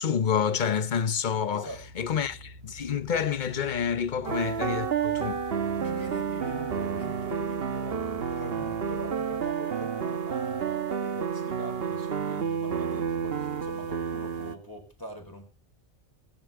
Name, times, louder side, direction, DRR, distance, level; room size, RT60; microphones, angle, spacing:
voice 1, 0.0-1.7 2.0-2.4 2.6-5.4, left 7 dB, 50° left, 0.9 m, -28 dB
voice 2, 1.5-2.1 4.1-4.3 5.8-15.5, equal, 20° left, 4.5 m, -43 dB
sound 1, 1.7-9.5, equal, 90° right, 2.0 m, -48 dB
sound 2, 4.2-14.6, right 7 dB, 70° right, 1.3 m, -30 dB
22.5 x 10.0 x 3.6 m
omnidirectional pair, 1.1 m